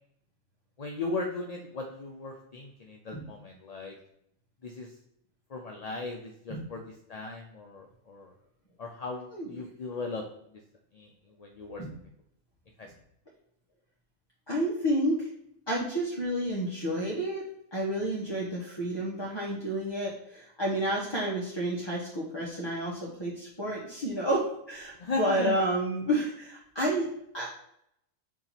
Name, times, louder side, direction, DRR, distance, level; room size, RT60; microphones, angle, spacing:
voice 1, 0.8-3.9 4.6-4.9 5.5-6.8 7.1-8.3 8.8-10.2 10.9-11.1 11.4-11.8 12.8-12.9 25.0-25.5, left 3 dB, 40° left, 1 dB, 0.6 m, -37 dB
voice 2, 9.3-9.6 11.8-11.9 14.5-15.3 15.7-17.4 17.7-27.1 27.3-27.5, right 1 dB, 20° left, -5 dB, 1.2 m, -30 dB
7.2 x 2.9 x 5.7 m, 0.74 s
omnidirectional pair, 1.4 m